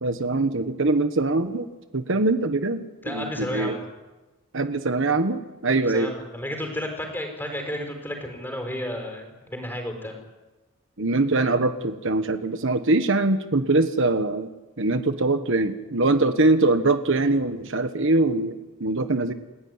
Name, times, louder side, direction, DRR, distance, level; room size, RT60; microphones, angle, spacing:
voice 1, 0.0-1.7 1.9-3.8 4.5-6.1 11.0-14.5 14.8-19.3, right 2 dB, 60° right, 9 dB, 1.3 m, -23 dB
voice 2, 3.0-3.9 5.8-10.1, left 1 dB, 10° left, 4 dB, 5.6 m, -32 dB
29.5 x 16.0 x 9.7 m, 1.1 s
head